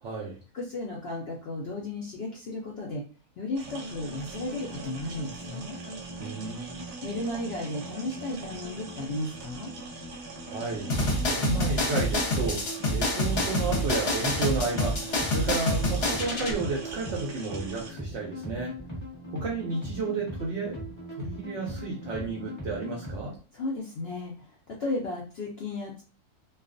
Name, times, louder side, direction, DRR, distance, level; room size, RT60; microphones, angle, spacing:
voice 1, 0.0-0.4 6.2-6.8 10.5-10.9 11.2-18.8 19.3-20.8 21.1-23.4, right 3 dB, 65° right, -1 dB, 0.7 m, -32 dB
voice 2, 0.5-3.0 3.4-5.7 7.0-9.7 23.5-26.0, left 2 dB, 90° left, -3 dB, 0.5 m, -34 dB
sound 1, 3.6-23.4, equal, 20° left, 1.0 m, -40 dB
sound 2, 3.6-17.9, right 5 dB, 90° right, 1.1 m, -44 dB
sound 3, 10.9-16.5, left 1 dB, 50° left, 0.8 m, -27 dB
2.4 x 2.3 x 2.4 m, 0.36 s
omnidirectional pair, 1.7 m